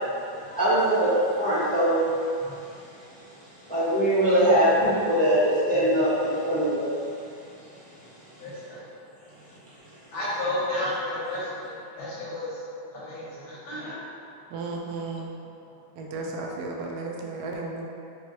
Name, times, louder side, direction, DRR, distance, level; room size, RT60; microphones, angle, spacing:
voice 1, 0.5-1.1 1.4-2.0 3.7-6.9, right 1 dB, 10° left, -12 dB, 0.5 m, -22 dB
voice 2, 8.4-8.8 10.1-11.7 12.0-12.6 12.9-14.0, left 1 dB, 80° left, -8 dB, 1.8 m, -32 dB
voice 3, 14.5-15.3 16.0-17.9, right 3 dB, 80° right, -1 dB, 0.8 m, -34 dB
5.2 x 2.4 x 3.1 m, 2.6 s
omnidirectional pair, 2.2 m